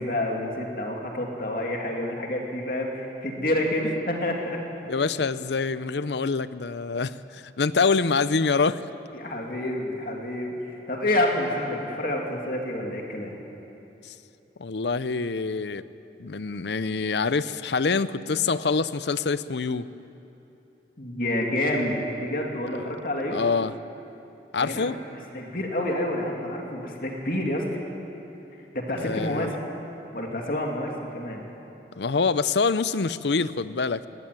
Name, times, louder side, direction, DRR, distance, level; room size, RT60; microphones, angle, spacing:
voice 1, 0.0-4.6 9.1-13.4 21.0-23.4 24.6-24.9 25.3-27.7 28.7-29.6 30.1-31.4, left 1 dB, 50° left, 0 dB, 2.7 m, -28 dB
voice 2, 4.9-8.8 14.0-14.1 14.6-15.9 16.2-19.9 22.7-22.9 23.3-23.7 24.5-25.0 29.0-29.5 32.0-34.1, left 4 dB, 75° left, 15 dB, 0.6 m, -25 dB
20.5 x 17.5 x 9.5 m, 2.9 s
head